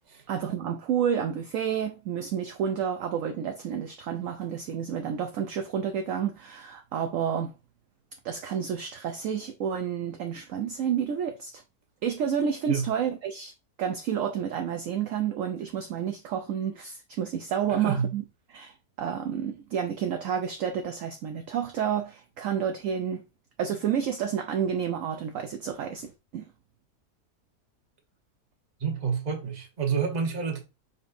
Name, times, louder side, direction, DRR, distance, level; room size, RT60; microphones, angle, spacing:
voice 1, 0.3-7.5 8.2-11.6 12.0-13.5 13.8-18.2 18.5-23.2 23.6-26.5, right 8 dB, 65° right, 0.8 m, -30 dB
voice 2, 17.8-18.1 28.8-30.6, right 6 dB, 30° right, 1.0 m, -28 dB
5.2 x 4.0 x 2.6 m
omnidirectional pair, 1.7 m